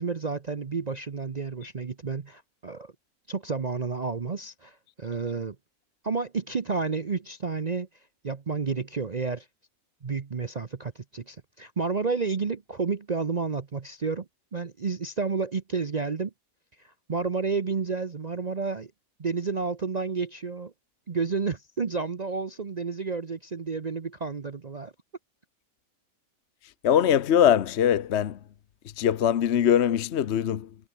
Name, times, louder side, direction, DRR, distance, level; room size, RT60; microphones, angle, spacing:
voice 1, 0.0-2.9 3.3-5.6 6.0-7.9 8.2-9.5 10.0-14.3 14.5-16.3 16.8-18.9 19.2-20.7 21.1-24.9, right 4 dB, 35° right, 0.8 m, -30 dB
voice 2, 26.6-28.4 28.8-30.8, left 9 dB, 55° left, 1.0 m, -22 dB
omnidirectional pair, 1.5 m